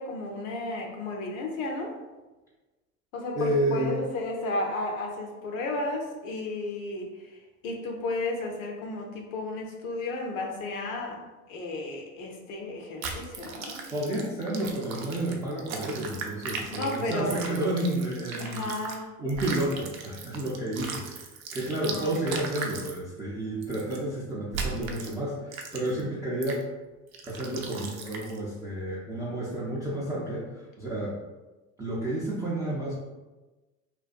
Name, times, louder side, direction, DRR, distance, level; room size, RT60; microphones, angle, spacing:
voice 1, 0.0-1.9 3.1-11.2 11.5-13.8 16.7-17.3 18.4-19.2 21.8-22.3, left 2 dB, 70° left, 1 dB, 0.7 m, -33 dB
voice 2, 3.3-4.0 13.9-18.6 19.2-26.6 27.2-31.2 31.8-32.9, right 1 dB, 10° right, -7 dB, 0.3 m, -31 dB
sound 1, 13.0-19.0 19.3-23.0 23.6-24.0 24.5-25.1 25.5-26.0 26.4-26.6 27.1-28.4, right 4 dB, 80° right, 0.5 m, -38 dB
2.4 x 2.2 x 2.4 m, 1.2 s
hypercardioid pair, 70°, 41 cm